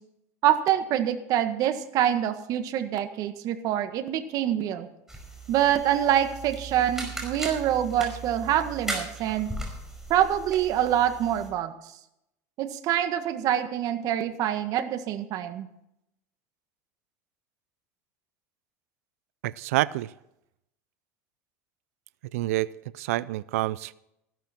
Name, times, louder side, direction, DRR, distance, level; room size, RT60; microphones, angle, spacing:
voice 1, 0.4-4.9 5.5-9.5 10.1-11.7 12.6-15.7, right 11 dB, 50° right, 9 dB, 1.6 m, -25 dB
sound 1, 5.1-11.5, right 2 dB, 5° right, 4.9 m, -38 dB
voice 2, 19.4-20.1 22.3-22.7 22.9-23.9, right 17 dB, 85° right, 19 dB, 0.4 m, -27 dB
15.5 x 12.0 x 4.4 m, 0.80 s
supercardioid pair, 115°, 8 cm